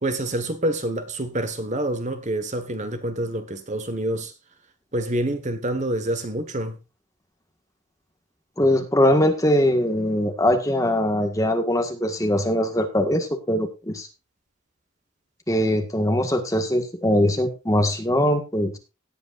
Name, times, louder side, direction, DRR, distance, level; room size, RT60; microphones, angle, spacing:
voice 1, 0.0-4.3 4.9-6.8, right 1 dB, 35° right, 1.4 m, -27 dB
voice 2, 8.6-14.1 15.5-18.8, left 1 dB, 15° left, 1.6 m, -21 dB
18.0 x 8.5 x 2.5 m
head